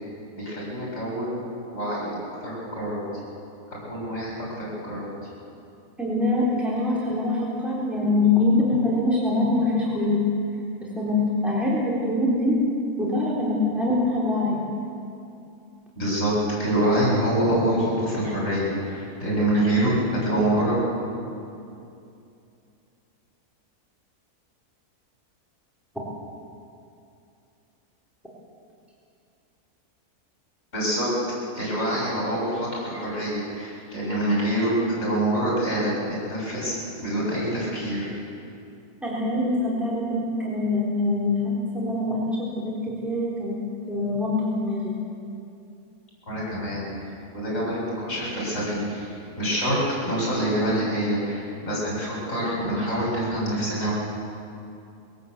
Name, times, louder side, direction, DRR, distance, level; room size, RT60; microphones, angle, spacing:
voice 1, 0.3-1.4 1.7-2.1 2.4-3.1 3.7-5.1 16.0-20.8 30.7-31.1 31.5-38.1 46.3-53.9, right 1 dB, 55° left, -5 dB, 7.6 m, -26 dB
voice 2, 6.0-10.2 10.8-12.6 13.0-14.6 39.0-42.7 43.0-43.6 43.9-45.0, left 2 dB, ahead, -7 dB, 3.9 m, -24 dB
22.0 x 17.0 x 8.3 m, 2.6 s
omnidirectional pair, 1.6 m